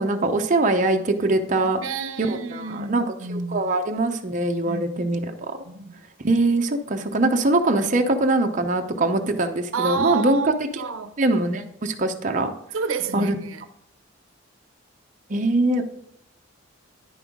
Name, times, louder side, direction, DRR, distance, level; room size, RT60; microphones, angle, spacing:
voice 1, 0.0-1.8 2.2-5.6 6.2-10.9 11.2-12.5 13.1-13.4 15.3-15.8, right 2 dB, 40° right, 0.6 m, -22 dB
voice 2, 1.8-3.7 4.6-5.1 5.7-6.0 7.8-7.9 9.7-11.1 12.7-13.6, right 5 dB, 90° right, 0.6 m, -30 dB
10.0 x 5.4 x 3.6 m
head